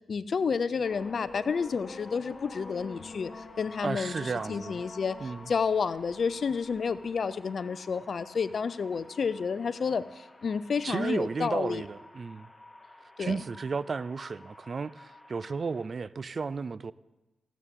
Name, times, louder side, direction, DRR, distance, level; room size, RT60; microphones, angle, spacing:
voice 1, 0.1-11.8 13.2-13.4, left 5 dB, 60° left, 0.5 m, -30 dB
sound 1, 0.8-7.2, left 3 dB, 45° left, 1.9 m, -46 dB
sound 2, 0.8-15.8, left 2 dB, 20° left, 0.9 m, -54 dB
voice 2, 3.8-4.8 5.2-5.5 10.8-12.5 13.2-16.9, right 4 dB, 50° right, 0.3 m, -33 dB
14.5 x 8.2 x 3.7 m
supercardioid pair, 50°, 0 cm